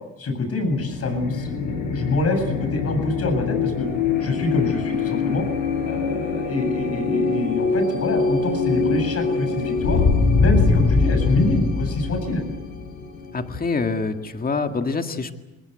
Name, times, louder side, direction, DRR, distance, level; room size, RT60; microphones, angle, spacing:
voice 1, 0.2-3.9 4.2-5.5 5.9-10.0 10.3-12.4, left 2 dB, 50° left, 5 dB, 7.9 m, -25 dB
sound 1, 0.6-14.1, left 4 dB, 80° left, 6.8 m, -23 dB
voice 2, 13.3-15.3, left 4 dB, 30° left, 6 dB, 2.0 m, -25 dB
27.5 x 19.5 x 8.1 m, 1.0 s
cardioid pair, 90°, 30 cm